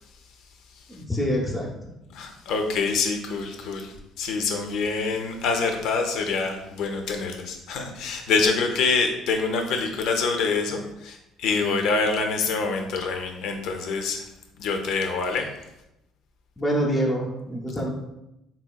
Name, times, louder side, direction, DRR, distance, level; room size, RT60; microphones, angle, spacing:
voice 1, 0.9-1.7 16.6-17.9, equal, 5° left, -3 dB, 0.6 m, -25 dB
voice 2, 2.1-14.3 14.6-15.5, left 4 dB, 75° left, 4 dB, 0.5 m, -26 dB
3.7 x 2.8 x 2.3 m, 0.88 s
cardioid pair, 105°, 0 cm